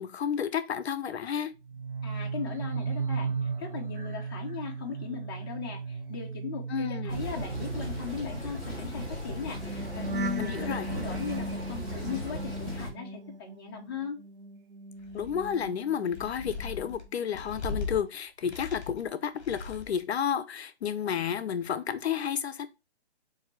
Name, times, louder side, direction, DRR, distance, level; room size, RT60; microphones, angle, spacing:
voice 1, 0.0-1.5 6.7-7.2 10.4-10.9 15.1-22.7, left 8 dB, 70° left, 0.5 m, -31 dB
sound 1, 1.6-13.9 14.2-16.3 16.6-16.9, right 4 dB, 50° right, 1.0 m, -37 dB
voice 2, 2.0-14.2, left 6 dB, 20° left, 0.6 m, -38 dB
sound 2, 7.1-12.9, equal, ahead, 1.6 m, -37 dB
sound 3, 15.0-15.6 16.0-18.0 18.4-19.1 19.4-20.0, left 3 dB, 40° left, 1.8 m, -38 dB
6.4 x 2.6 x 3.1 m
hypercardioid pair, 160°, 33 cm